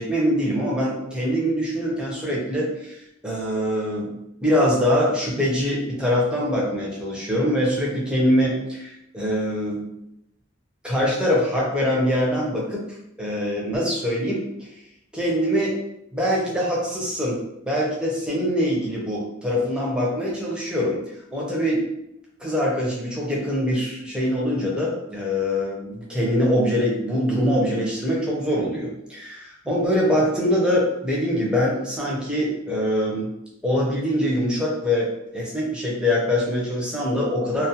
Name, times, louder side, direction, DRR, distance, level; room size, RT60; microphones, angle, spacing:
voice 1, 0.0-4.1 4.4-9.8 10.8-12.8 13.2-14.4 15.1-15.8 16.1-21.0 21.3-21.8 22.4-33.3 33.6-37.7, equal, 5° right, -4 dB, 0.5 m, -23 dB
2.3 x 2.1 x 2.7 m, 0.82 s
head